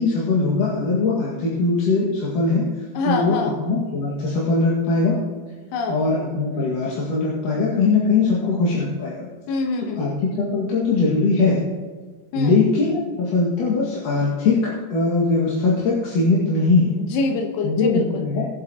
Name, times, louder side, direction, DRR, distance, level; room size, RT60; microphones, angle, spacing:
voice 1, 0.0-2.6 3.0-5.2 5.9-9.3 9.8-11.6 12.3-14.6 14.9-17.0 17.6-18.5, left 3 dB, 50° left, -7 dB, 3.0 m, -21 dB
voice 2, 3.0-3.5 5.7-6.0 9.5-10.0 12.3-12.6 16.8-18.2, left 3 dB, 80° left, 3 dB, 3.7 m, -25 dB
22.0 x 8.1 x 3.0 m, 1.5 s
omnidirectional pair, 5.7 m